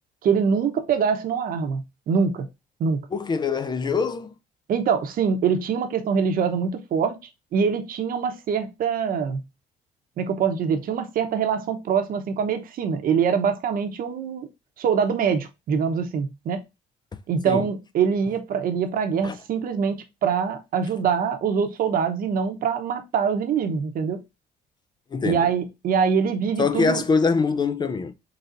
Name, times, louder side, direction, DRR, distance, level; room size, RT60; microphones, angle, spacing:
voice 1, 0.2-2.5 2.8-3.0 4.7-7.2 7.5-9.4 10.2-14.5 14.8-16.6 17.3-24.2 25.2-27.0, right 6 dB, 60° right, 0.9 m, -24 dB
voice 2, 3.1-4.3 17.5-17.7 19.2-19.4 25.1-25.5 26.6-28.1, left 4 dB, 25° left, 0.4 m, -23 dB
4.1 x 4.0 x 2.5 m
cardioid pair, 110°, 17 cm